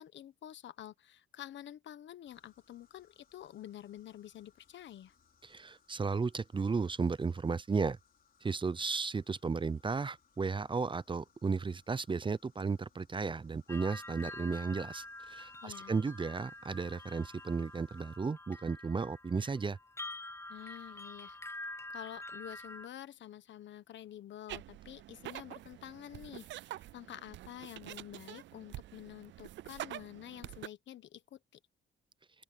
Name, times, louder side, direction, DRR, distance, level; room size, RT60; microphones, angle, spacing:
voice 1, 0.0-5.1 15.6-16.0 20.5-21.4 21.9-31.4, left 11 dB, 70° left, 1.3 m, -49 dB
sound 1, 2.3-18.2, left 7 dB, 45° left, 4.1 m, -70 dB
voice 2, 5.4-8.0 8.4-19.8, right 4 dB, 25° right, 0.7 m, -34 dB
sound 2, 13.7-22.9, left 2 dB, 15° left, 0.9 m, -47 dB
sound 3, 24.5-30.7, right 15 dB, 65° right, 0.4 m, -47 dB
open air
cardioid pair, 90°, 20 cm